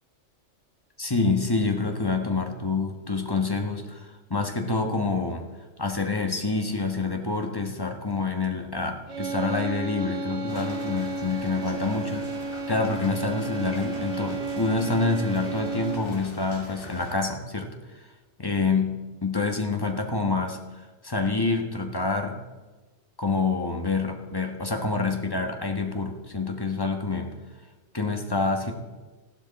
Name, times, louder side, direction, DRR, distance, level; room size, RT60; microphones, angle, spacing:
voice 1, 1.0-5.5 5.8-12.3 12.7-18.1 18.4-22.4 23.2-27.3 27.9-28.7, left 3 dB, 20° left, 3 dB, 1.3 m, -27 dB
sound 1, 9.1-16.2, right 3 dB, 70° right, 1.7 m, -32 dB
sound 2, 10.5-17.2, left 2 dB, 50° left, 1.9 m, -43 dB
15.0 x 12.0 x 4.2 m, 1.2 s
omnidirectional pair, 1.2 m